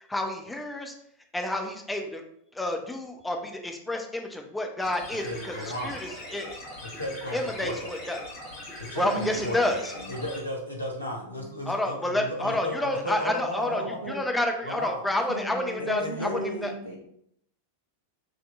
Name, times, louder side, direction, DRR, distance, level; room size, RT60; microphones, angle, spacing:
voice 1, 0.1-0.9 1.3-2.2 2.5-6.6 7.3-8.2 9.0-9.9 11.7-13.8 14.1-16.7, left 1 dB, 5° left, 3 dB, 0.6 m, -29 dB
sound 1, 4.8-10.4, left 1 dB, 45° left, 1.6 m, -41 dB
voice 2, 5.2-6.0 6.8-8.0 8.8-9.8 10.1-14.0 14.6-15.0 15.8-16.6, left 1 dB, 90° left, -1 dB, 0.9 m, -34 dB
voice 3, 9.0-9.6 10.0-10.1 11.3-11.4 13.7-14.2 15.3-17.0, right 1 dB, 80° right, -3 dB, 0.8 m, -36 dB
6.2 x 2.9 x 2.4 m, 0.72 s
figure-of-eight pair, 90°, 0 cm